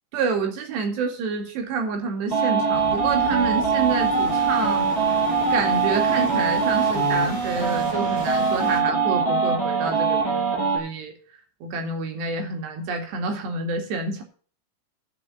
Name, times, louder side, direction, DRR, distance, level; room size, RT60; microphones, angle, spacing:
voice 1, 0.1-4.9 5.5-11.1 11.6-14.2, right 4 dB, 65° right, 3 dB, 4.2 m, -28 dB
sound 1, 2.3-10.8, right 5 dB, 10° right, 7.6 m, -22 dB
sound 2, 2.7-8.8, right 3 dB, 45° right, 4.5 m, -38 dB
12.0 x 7.5 x 6.9 m, 0.42 s
omnidirectional pair, 5.4 m